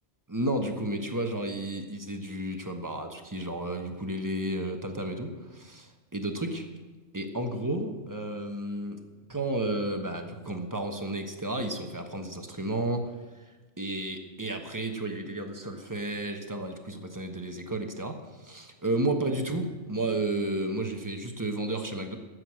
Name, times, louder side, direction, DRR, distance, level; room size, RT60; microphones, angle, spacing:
voice 1, 0.3-6.7 7.1-9.0 9.3-13.1 13.8-22.2, right 1 dB, 15° right, 5 dB, 1.1 m, -32 dB
13.0 x 7.9 x 7.6 m, 1.3 s
omnidirectional pair, 1.4 m